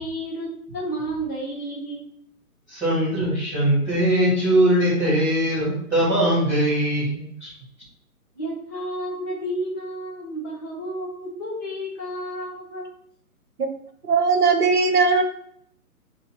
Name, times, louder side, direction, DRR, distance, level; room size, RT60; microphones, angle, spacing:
voice 1, 0.0-2.1 8.3-12.9, right 1 dB, 15° left, -6 dB, 0.8 m, -31 dB
voice 2, 2.7-7.5, right 1 dB, 5° right, -15 dB, 1.3 m, -21 dB
voice 3, 14.0-15.2, right 4 dB, 80° right, 6 dB, 1.0 m, -19 dB
6.1 x 2.8 x 2.4 m, 0.67 s
figure-of-eight pair, 135°, 45 cm